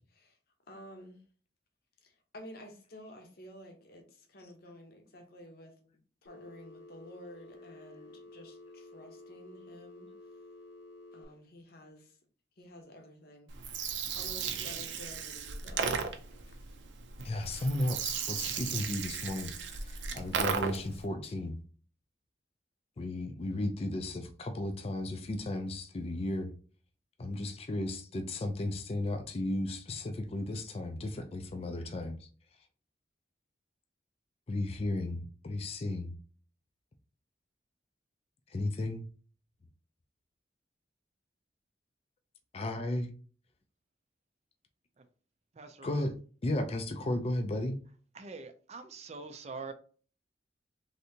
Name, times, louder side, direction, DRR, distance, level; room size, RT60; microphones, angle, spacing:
voice 1, 0.7-1.2 2.0-5.7 6.2-10.1 11.1-12.2 12.6-16.8, equal, 55° left, 0.8 m, -51 dB
Telephone, 6.3-11.3, left 2 dB, 90° left, 0.8 m, -52 dB
Gurgling, 13.5-21.0, right 6 dB, 85° right, 0.5 m, -35 dB
voice 2, 17.2-21.6 23.0-26.5 27.2-32.2 34.5-36.1 38.5-39.0 42.5-43.1 45.8-46.1 46.4-47.8, left 1 dB, 35° left, 0.4 m, -34 dB
voice 3, 45.6-46.0 48.2-49.7, right 4 dB, 35° right, 0.4 m, -44 dB
3.3 x 2.7 x 2.7 m
head